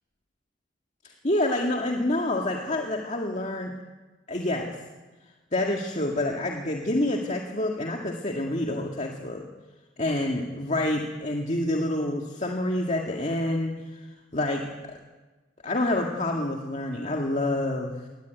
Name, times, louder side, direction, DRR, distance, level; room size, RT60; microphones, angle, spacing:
voice 1, 1.0-3.7 4.3-4.8 5.5-9.5 10.0-15.0 15.6-18.1, left 1 dB, 40° left, 0 dB, 2.0 m, -28 dB
22.5 x 19.0 x 9.4 m, 1.2 s
head